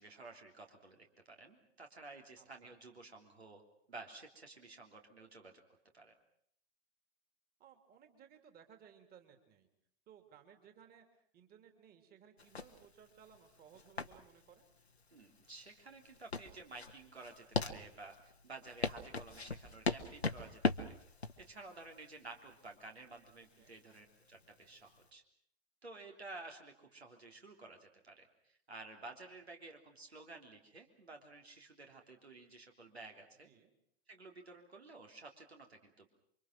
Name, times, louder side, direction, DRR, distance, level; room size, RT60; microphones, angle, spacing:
voice 1, 0.0-3.6 3.9-5.5 5.9-6.1 15.1-21.0 21.4-25.2 25.8-33.5 34.1-36.1, right 3 dB, 80° right, 3 dB, 3.4 m, -53 dB
voice 2, 2.4-2.8 7.6-9.7 10.1-14.7 23.6-23.7 33.4-33.7, right 8 dB, 30° right, 6 dB, 3.1 m, -61 dB
sound 1, 12.4-25.1, left 3 dB, 85° left, 1.3 m, -40 dB
28.5 x 24.5 x 6.1 m, 0.67 s
figure-of-eight pair, 95°, 31 cm